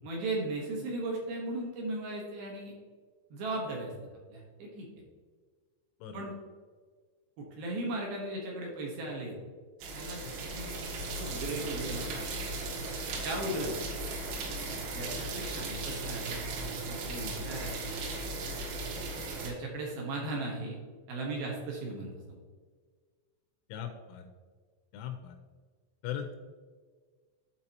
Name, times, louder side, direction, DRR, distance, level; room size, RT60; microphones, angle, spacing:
voice 1, 0.0-2.7 3.3-3.9 4.3-4.9 6.1-6.3 7.4-9.4 9.9-10.7 11.2-12.2 13.2-13.7 14.9-18.0 19.4-20.8 21.1-22.1, right 2 dB, 75° right, -2 dB, 2.3 m, -37 dB
sound 1, 9.8-19.5, right 2 dB, 90° right, 4.1 m, -37 dB
voice 2, 23.7-24.2 24.9-25.4 26.0-26.3, left 9 dB, 85° left, 6 dB, 3.0 m, -39 dB
12.0 x 4.8 x 2.9 m, 1.6 s
omnidirectional pair, 5.8 m